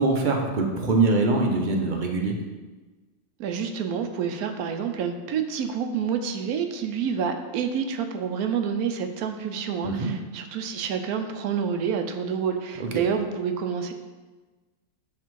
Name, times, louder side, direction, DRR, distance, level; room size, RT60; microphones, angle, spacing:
voice 1, 0.0-2.3 9.8-10.1 12.8-13.0, right 3 dB, 45° right, 2 dB, 0.7 m, -23 dB
voice 2, 3.4-13.9, right 7 dB, 90° right, 6 dB, 1.1 m, -28 dB
7.3 x 3.4 x 4.6 m, 1.3 s
omnidirectional pair, 1.5 m